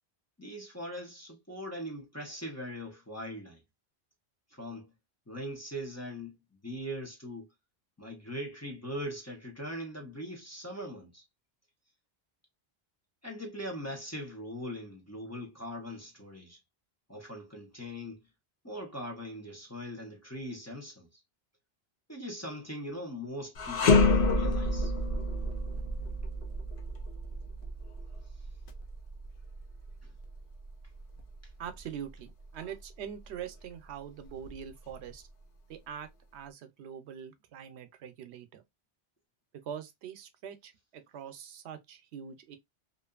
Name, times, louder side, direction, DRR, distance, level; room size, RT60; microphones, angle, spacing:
voice 1, 0.4-3.6 4.5-4.9 5.3-6.3 6.6-7.5 8.0-11.2 13.2-16.6 17.1-18.3 18.6-21.1 22.1-24.9, equal, 15° left, 0.8 m, -40 dB
sound 1, 23.5-32.8 33.2-33.4 34.3-35.1, left 2 dB, 60° left, 0.7 m, -30 dB
voice 2, 31.6-35.3 35.7-38.6 39.6-42.6, right 8 dB, 90° right, 0.9 m, -43 dB
2.6 x 2.5 x 2.3 m
omnidirectional pair, 1.1 m